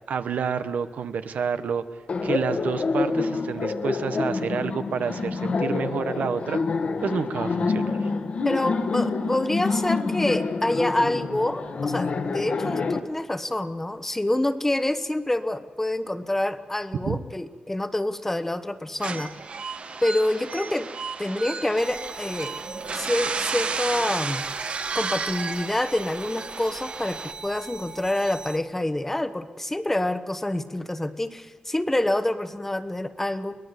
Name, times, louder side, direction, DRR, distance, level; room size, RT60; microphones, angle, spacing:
voice 1, 0.1-1.8 2.2-6.6 7.0-8.1 17.0-17.2, right 6 dB, 85° right, 11 dB, 1.1 m, -29 dB
Laughter, 2.1-13.0, left 4 dB, 50° left, 1.5 m, -27 dB
voice 2, 8.4-19.3 20.0-20.9 21.2-22.6 22.9-24.4 24.9-33.6, left 1 dB, 10° left, 12 dB, 0.9 m, -27 dB
sound 1, 19.0-27.3, right 4 dB, 50° right, 1.2 m, -32 dB
sound 2, 21.8-28.6, right 4 dB, 30° right, 1.0 m, -42 dB
23.0 x 19.0 x 8.1 m, 1.4 s
wide cardioid pair, 140°, 3 cm